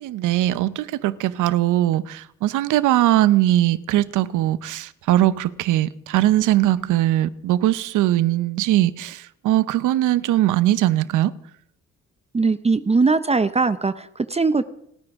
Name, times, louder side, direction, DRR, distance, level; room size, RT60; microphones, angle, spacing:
voice 1, 0.0-11.3, right 14 dB, 85° right, 0.7 m, -20 dB
voice 2, 12.3-14.6, right 4 dB, 20° right, 0.7 m, -20 dB
29.5 x 10.0 x 3.6 m
cardioid pair, 90°, 30 cm